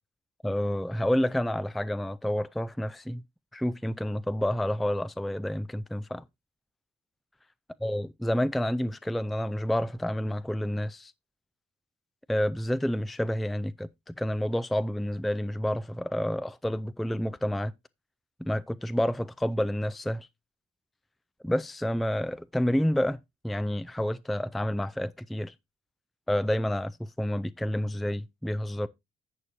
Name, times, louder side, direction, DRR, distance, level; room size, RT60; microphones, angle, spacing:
voice 1, 0.4-3.2 3.5-6.2 7.8-11.1 12.3-17.7 18.4-20.3 21.4-23.2 23.4-25.5 26.3-28.9, equal, ahead, 0.4 m, -29 dB
11.0 x 7.5 x 2.7 m
cardioid pair, 90°, 20 cm